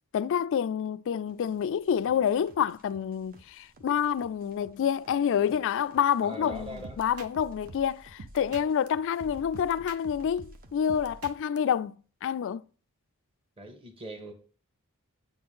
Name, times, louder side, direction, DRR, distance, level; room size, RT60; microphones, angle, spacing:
voice 1, 0.1-6.7 7.0-12.0 12.2-12.6, left 8 dB, 60° left, 0.3 m, -28 dB
sound 1, 1.3-11.3, right 1 dB, 40° right, 1.1 m, -59 dB
voice 2, 6.2-7.0 13.6-14.3, equal, 25° right, 1.6 m, -41 dB
sound 2, 6.5-8.9 9.2-11.6, right 2 dB, 90° right, 0.9 m, -46 dB
9.0 x 4.3 x 5.5 m
head